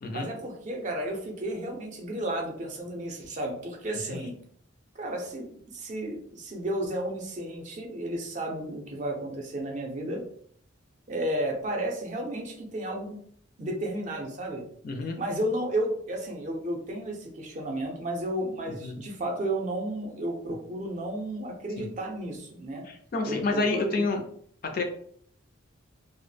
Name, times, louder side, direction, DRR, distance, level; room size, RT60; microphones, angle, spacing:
voice 1, 0.1-4.3 4.9-10.2 11.1-13.2 13.6-14.6 15.2-22.8 23.2-24.0, right 1 dB, 35° right, 1 dB, 0.5 m, -33 dB
voice 2, 14.8-15.2 18.7-19.0 21.8-21.9 22.9-24.2 24.6-24.8, left 3 dB, 45° left, 4 dB, 0.3 m, -29 dB
2.1 x 2.0 x 3.2 m, 0.62 s
head